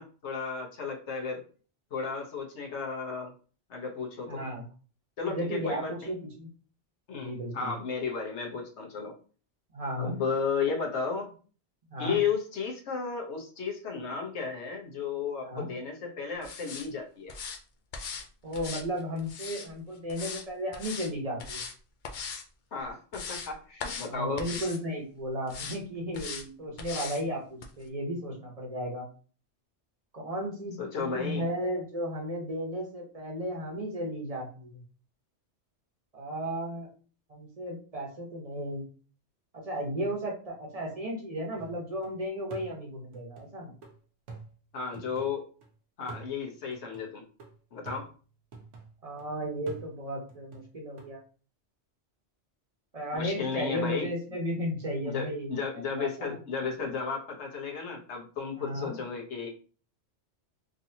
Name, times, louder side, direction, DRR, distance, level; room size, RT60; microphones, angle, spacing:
voice 1, 0.0-1.4 1.9-3.3 3.7-4.4 5.2-6.1 7.1-9.2 10.0-11.3 12.0-17.3 22.7-24.5 30.8-31.5 44.7-45.5 46.0-47.2 47.7-48.1 53.1-54.1 55.0-59.5, left 5 dB, 70° left, 1 dB, 1.3 m, -33 dB
voice 2, 4.3-4.6 5.3-6.5 7.1-7.7 9.7-10.1 11.9-12.2 15.4-15.7 18.4-21.6 24.1-29.1 30.1-34.8 36.1-36.9 37.3-38.8 39.5-43.7 49.0-51.2 52.9-55.5 55.9-56.3 58.6-59.0, equal, 35° right, -1 dB, 1.0 m, -34 dB
sound 1, 16.4-16.9 17.3-17.6 17.9-18.3 18.5-19.7 20.1-20.4 20.7-21.1 21.4-21.7 22.0-22.4 22.8-23.5 23.8-24.1 24.4-24.8 25.5-25.8 26.1-26.4 26.8-27.2 27.6-27.7, left 5 dB, 55° left, 0.6 m, -39 dB
sound 2, 41.6-42.1 42.5-45.7 46.1-49.2 49.7-51.1, right 4 dB, 85° right, 1.2 m, -49 dB
3.8 x 2.7 x 2.7 m, 0.39 s
omnidirectional pair, 1.2 m